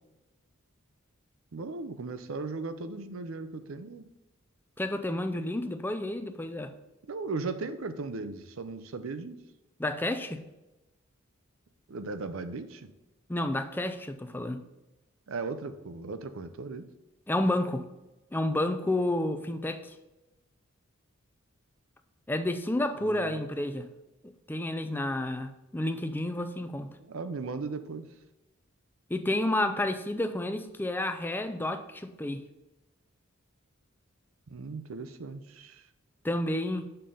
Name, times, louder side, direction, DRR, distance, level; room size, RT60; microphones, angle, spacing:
voice 1, 1.5-4.1 7.1-9.4 11.9-12.9 15.3-16.8 23.0-23.4 27.0-28.1 34.5-35.8, right 3 dB, 70° right, 11 dB, 0.6 m, -37 dB
voice 2, 4.8-6.7 9.8-10.4 13.3-14.6 17.3-17.8 18.3-20.0 22.3-23.9 24.5-26.9 29.1-32.4 36.2-36.9, left 1 dB, 10° left, 9 dB, 0.4 m, -30 dB
6.7 x 3.8 x 5.3 m, 1.0 s
head